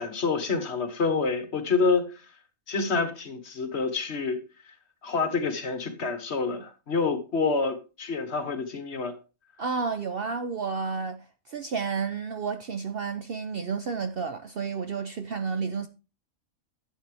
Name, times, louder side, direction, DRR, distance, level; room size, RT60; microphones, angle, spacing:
voice 1, 0.0-2.1 2.7-4.4 5.0-9.2, left 4 dB, 50° left, 1.4 m, -27 dB
voice 2, 9.6-15.9, right 5 dB, 55° right, 0.7 m, -31 dB
11.5 x 7.5 x 3.4 m
omnidirectional pair, 1.5 m